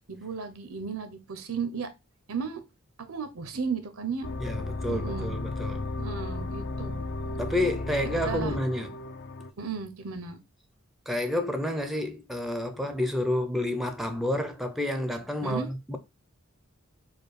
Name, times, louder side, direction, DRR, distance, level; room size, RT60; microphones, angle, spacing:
voice 1, 0.1-1.9 2.3-2.6 3.0-4.3 4.8-5.3 6.0-7.1 8.0-8.6 9.6-10.4 15.4-15.7, right 5 dB, 85° right, 0.8 m, -34 dB
sound 1, 4.2-9.5, left 2 dB, 55° left, 0.5 m, -34 dB
voice 2, 4.4-5.9 7.4-8.9 11.1-16.0, left 1 dB, ahead, 0.5 m, -29 dB
4.5 x 2.3 x 4.8 m
head